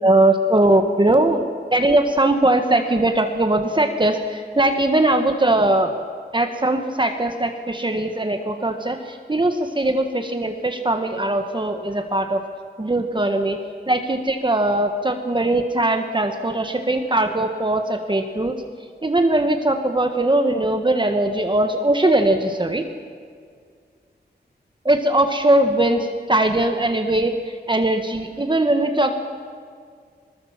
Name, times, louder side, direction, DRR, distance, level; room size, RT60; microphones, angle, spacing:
voice 1, 0.0-1.4 1.7-6.0 6.3-12.4 12.8-13.6 13.9-18.5 19.0-22.8 24.8-27.3 27.7-29.2, right 1 dB, 25° right, 5 dB, 1.5 m, -20 dB
23.0 x 20.5 x 7.5 m, 2.1 s
wide cardioid pair, 100°, 18 cm